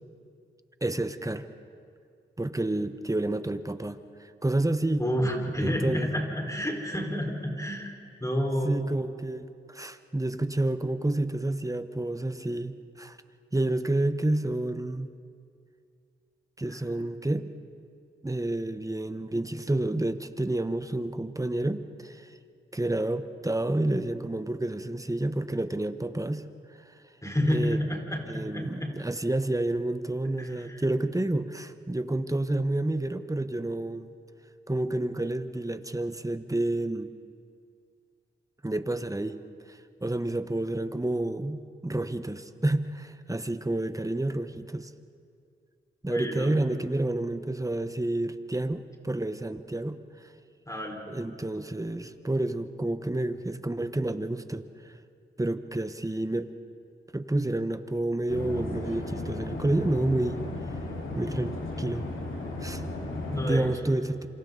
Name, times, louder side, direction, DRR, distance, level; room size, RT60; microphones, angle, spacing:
voice 1, 0.8-1.5 2.4-5.0 5.6-6.1 8.6-13.2 13.5-15.1 16.6-17.5 18.2-22.3 22.7-26.4 27.5-27.8 28.3-34.1 34.7-37.1 38.6-39.4 39.7-44.9 46.0-50.3 51.1-54.9 55.4-56.5 57.1-60.5 61.1-61.5 61.8-62.1 62.6-62.8 63.5-64.3, right 1 dB, 15° right, 10 dB, 1.2 m, -29 dB
voice 2, 5.0-7.9 8.2-8.9 16.7-16.8 27.2-28.9 30.4-30.8 46.1-46.5 50.7-51.0 63.0-63.9, equal, 15° left, 1 dB, 4.8 m, -30 dB
sound 1, 58.3-63.6, left 2 dB, 80° left, 3.4 m, -35 dB
27.5 x 26.0 x 4.1 m, 2.4 s
cardioid pair, 40°, 21 cm